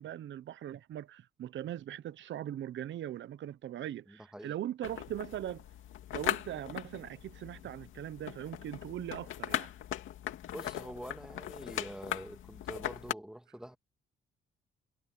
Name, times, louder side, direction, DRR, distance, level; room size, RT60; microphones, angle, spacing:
voice 1, 0.0-5.6 6.1-9.7, right 11 dB, 70° right, 1.1 m, -40 dB
voice 2, 4.1-4.6 10.5-13.8, equal, 5° right, 2.4 m, -45 dB
sound 1, 4.8-13.1, left 11 dB, 80° left, 2.5 m, -39 dB
cardioid pair, 90°, 20 cm